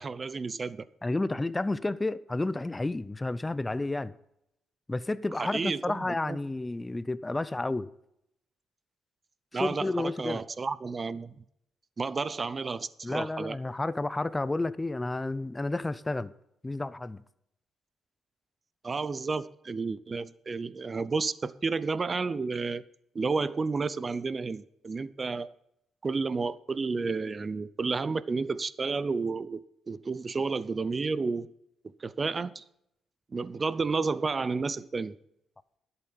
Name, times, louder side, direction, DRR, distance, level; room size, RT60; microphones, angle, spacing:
voice 1, 0.0-0.9 5.4-6.4 9.5-11.4 12.0-13.6 18.8-22.8 23.1-25.5 26.0-31.5 31.8-32.6 33.3-35.2, right 4 dB, 30° right, 0.6 m, -31 dB
voice 2, 1.0-4.1 4.9-7.9 9.5-10.4 13.0-16.3 16.6-17.2, left 2 dB, 15° left, 0.6 m, -31 dB
11.0 x 8.1 x 5.8 m
cardioid pair, 90°, 0 cm